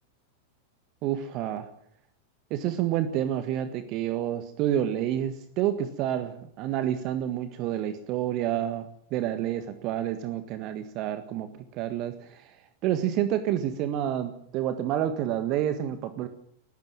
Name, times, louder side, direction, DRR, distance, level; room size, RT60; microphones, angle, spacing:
voice 1, 1.0-1.7 2.5-12.6 12.8-16.3, right 11 dB, 40° right, 10 dB, 1.6 m, -29 dB
20.0 x 15.0 x 9.2 m, 0.66 s
figure-of-eight pair, 90°, 0 cm